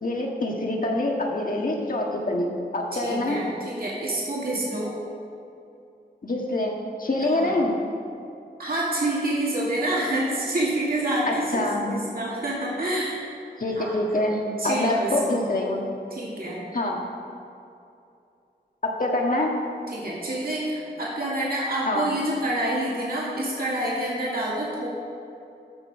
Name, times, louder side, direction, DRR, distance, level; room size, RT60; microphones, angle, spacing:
voice 1, 0.0-3.4 6.2-7.8 11.3-11.9 13.6-15.8 16.7-17.0 19.0-19.5 21.9-22.1, left 1 dB, 50° left, -1 dB, 1.7 m, -25 dB
voice 2, 2.9-4.9 7.3-7.5 8.6-13.2 13.8-14.0 14.6-15.5 16.1-16.6 19.9-24.9, right 1 dB, 55° right, -6 dB, 2.3 m, -27 dB
15.0 x 6.2 x 4.8 m, 2.6 s
wide cardioid pair, 85°, 18 cm